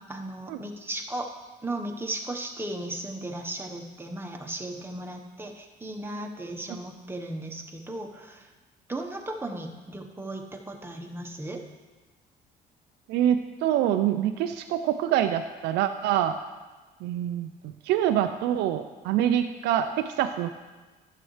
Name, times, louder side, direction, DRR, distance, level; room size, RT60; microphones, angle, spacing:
voice 1, 0.1-1.3 1.6-8.5 8.9-11.6, right 1 dB, 15° right, 2 dB, 1.1 m, -36 dB
voice 2, 13.1-16.4 17.0-20.5, right 11 dB, 85° right, 7 dB, 0.5 m, -25 dB
11.5 x 7.6 x 3.2 m, 1.3 s
cardioid pair, 110°, 17 cm